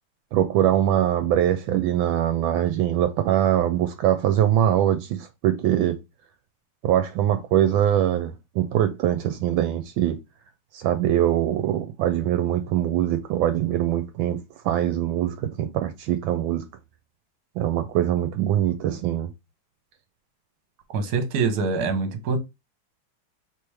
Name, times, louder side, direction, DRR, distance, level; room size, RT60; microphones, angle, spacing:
voice 1, 0.3-6.0 6.8-10.2 10.7-14.4 14.6-16.6 17.6-19.3, right 11 dB, 80° right, 1.3 m, -22 dB
voice 2, 20.9-22.4, right 4 dB, 60° right, 1.3 m, -24 dB
3.3 x 3.0 x 4.7 m
omnidirectional pair, 2.2 m